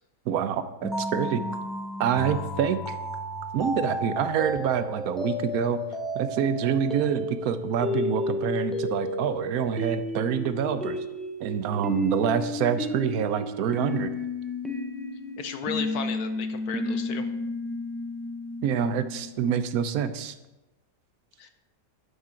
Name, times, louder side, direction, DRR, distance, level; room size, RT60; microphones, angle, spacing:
voice 1, 0.3-1.4 2.0-3.0 3.5-5.8 6.1-11.0 11.4-14.1 18.6-20.3, right 8 dB, 65° right, 11 dB, 1.0 m, -26 dB
sound 1, 0.8-19.3, left 1 dB, ahead, 0.3 m, -32 dB
voice 2, 15.4-17.3 21.4-21.5, left 6 dB, 70° left, 8 dB, 1.0 m, -34 dB
11.0 x 6.1 x 4.4 m, 1.0 s
omnidirectional pair, 1.9 m